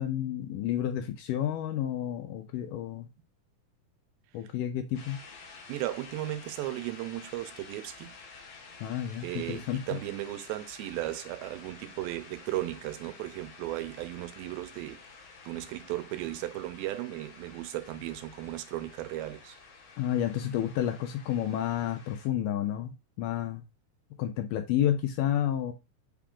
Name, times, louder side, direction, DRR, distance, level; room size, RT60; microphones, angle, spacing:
voice 1, 0.0-3.1 4.3-5.2 8.8-9.8 20.0-23.6 24.2-25.7, left 11 dB, 80° left, 2.0 m, -30 dB
sound 1, 4.9-22.3, left 4 dB, 65° left, 1.7 m, -51 dB
voice 2, 5.7-8.1 9.2-15.0 15.5-19.6, right 15 dB, 85° right, 2.4 m, -36 dB
5.7 x 2.4 x 3.6 m
omnidirectional pair, 4.2 m